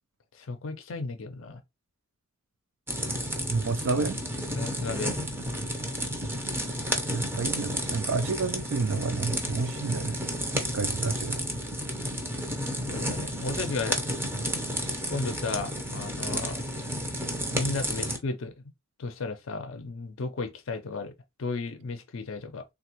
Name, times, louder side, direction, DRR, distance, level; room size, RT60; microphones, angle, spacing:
voice 1, 0.3-1.6 4.5-5.2 12.9-14.0 15.0-16.6 17.5-18.5 19.0-21.1 21.4-22.6, left 3 dB, 70° left, 0.5 m, -34 dB
sound 1, 2.9-18.2, equal, 10° right, 0.6 m, -32 dB
voice 2, 3.5-4.2 7.1-11.6, right 4 dB, 65° right, 0.4 m, -30 dB
3.4 x 2.3 x 2.8 m
head